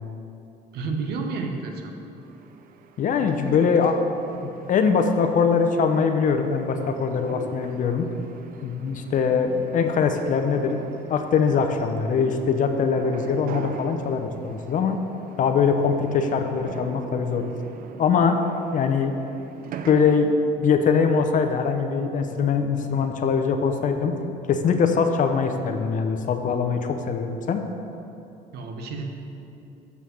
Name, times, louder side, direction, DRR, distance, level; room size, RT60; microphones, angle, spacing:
voice 1, 0.7-2.0 28.5-29.0, right 4 dB, 75° right, 3 dB, 1.0 m, -30 dB
sound 1, 2.2-20.4, right 7 dB, 55° right, 0.5 m, -42 dB
voice 2, 3.0-4.0 4.4-8.1 8.6-10.8 11.1-15.0 15.4-17.4 18.0-18.4 18.7-19.1 19.9-20.3 20.6-24.2 24.5-27.6, left 6 dB, 50° left, 6 dB, 0.7 m, -22 dB
7.1 x 5.6 x 6.3 m, 2.8 s
cardioid pair, 110°, 17 cm